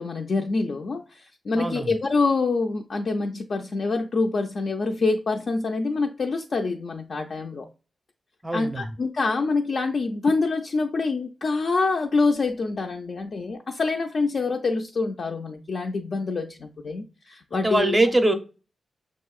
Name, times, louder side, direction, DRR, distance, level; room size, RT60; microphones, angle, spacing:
voice 1, 0.0-7.7 8.5-18.0, left 3 dB, 50° left, 0.3 m, -26 dB
voice 2, 1.5-1.9 8.4-8.8 17.5-18.3, right 1 dB, 15° right, 0.5 m, -22 dB
6.3 x 2.7 x 2.3 m
wide cardioid pair, 145°, 0 cm